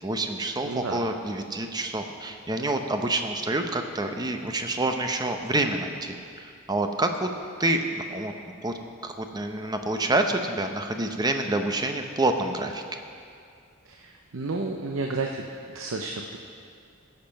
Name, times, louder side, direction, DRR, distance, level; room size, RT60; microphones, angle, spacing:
voice 1, 0.0-7.3 7.6-8.3 8.6-8.7 9.0-12.8, right 2 dB, 20° right, 5 dB, 0.7 m, -27 dB
voice 2, 0.6-1.0 13.9-15.4 15.7-16.4, right 3 dB, 85° right, 2 dB, 0.7 m, -31 dB
16.5 x 6.8 x 5.3 m, 2.3 s
head